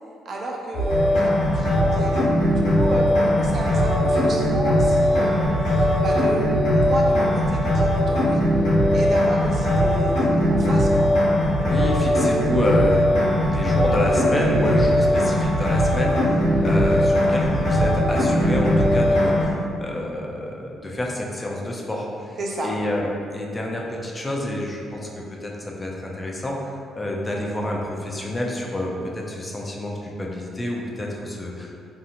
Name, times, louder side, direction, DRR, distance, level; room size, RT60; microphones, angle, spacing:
voice 1, 0.2-8.4 8.9-11.1 22.4-22.7, right 1 dB, 55° right, -1 dB, 0.4 m, -32 dB
sound 1, 0.7-19.5, equal, 80° left, 0.9 m, -19 dB
voice 2, 11.6-31.8, left 1 dB, 25° left, -1 dB, 0.4 m, -28 dB
2.7 x 2.5 x 2.5 m, 2.5 s
supercardioid pair, 65°, 0 cm